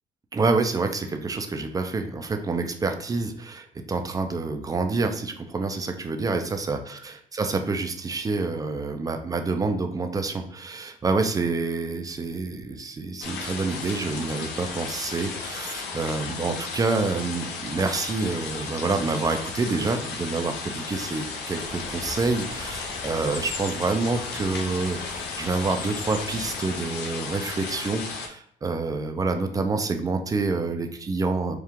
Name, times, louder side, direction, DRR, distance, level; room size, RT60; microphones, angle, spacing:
voice 1, 0.3-31.5, right 3 dB, 20° right, 6 dB, 0.5 m, -27 dB
sound 1, 13.2-28.3, left 4 dB, 80° left, 0.7 m, -35 dB
sound 2, 21.6-26.6, left 3 dB, 30° left, 0.6 m, -40 dB
4.5 x 2.4 x 3.5 m, 0.69 s
cardioid pair, 110°, 17 cm